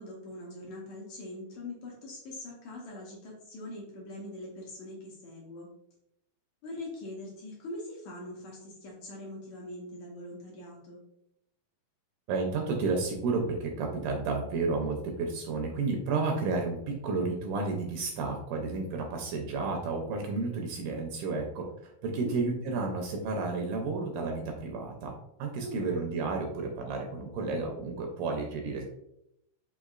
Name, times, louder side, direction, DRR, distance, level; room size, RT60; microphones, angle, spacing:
voice 1, 0.0-5.7 6.6-11.0 22.2-22.4 25.5-26.1, left 1 dB, 75° left, -3 dB, 1.9 m, -42 dB
voice 2, 12.3-25.1 25.4-28.8, right 3 dB, 80° right, 1 dB, 2.0 m, -31 dB
5.3 x 3.4 x 2.4 m, 0.81 s
omnidirectional pair, 4.0 m